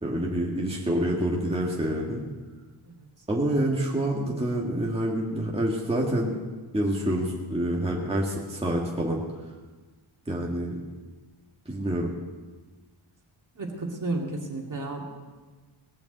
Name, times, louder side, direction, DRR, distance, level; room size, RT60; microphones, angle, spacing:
voice 1, 0.0-2.2 3.3-6.3 6.7-9.2 10.3-10.8 11.7-12.1, right 1 dB, 10° right, -3 dB, 1.8 m, -27 dB
voice 2, 13.5-15.0, right 2 dB, 40° right, -1 dB, 2.4 m, -32 dB
19.0 x 7.0 x 8.0 m, 1.3 s
wide cardioid pair, 140°, 48 cm